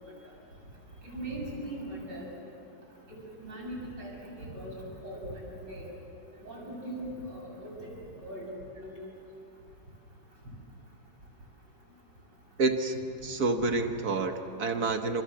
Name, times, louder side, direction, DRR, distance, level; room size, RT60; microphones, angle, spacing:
voice 1, 1.0-2.3 3.1-4.7 5.0-5.9 6.4-7.8 8.2-8.5 8.8-8.9, right 1 dB, 80° right, -1 dB, 8.1 m, -40 dB
voice 2, 12.6-13.0 13.2-15.2, right 3 dB, 60° right, 6 dB, 1.8 m, -28 dB
28.5 x 27.5 x 7.6 m, 2.5 s
omnidirectional pair, 1.9 m